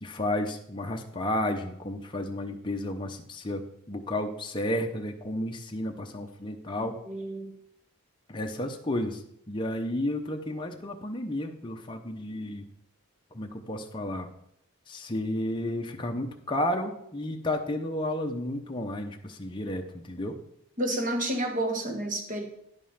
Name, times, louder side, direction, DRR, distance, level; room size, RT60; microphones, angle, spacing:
voice 1, 0.0-7.0 8.3-9.2 9.5-12.6 13.3-14.3 14.9-20.4, left 1 dB, 20° left, 2 dB, 0.7 m, -32 dB
voice 2, 6.8-7.5 20.8-22.4, right 1 dB, 35° right, 3 dB, 1.4 m, -30 dB
10.0 x 5.4 x 5.6 m, 0.76 s
head